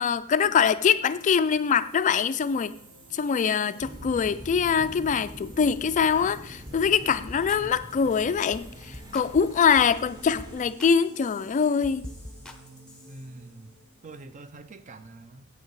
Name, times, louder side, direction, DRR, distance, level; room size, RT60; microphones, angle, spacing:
voice 1, 0.0-2.7 3.1-12.0, left 6 dB, 35° left, 0.3 m, -23 dB
sound 1, 0.8-14.2, right 1 dB, 75° right, 2.7 m, -52 dB
sound 2, 3.8-10.6, equal, 20° right, 1.0 m, -45 dB
sound 3, 6.7-6.8 7.1-7.6 7.9-8.1 8.5-8.7 8.9-10.0 10.4-10.9 11.2-13.2, left 1 dB, 5° left, 0.7 m, -44 dB
voice 2, 13.1-13.7 14.0-15.5, right 2 dB, 35° right, 0.5 m, -45 dB
8.2 x 8.0 x 4.7 m
head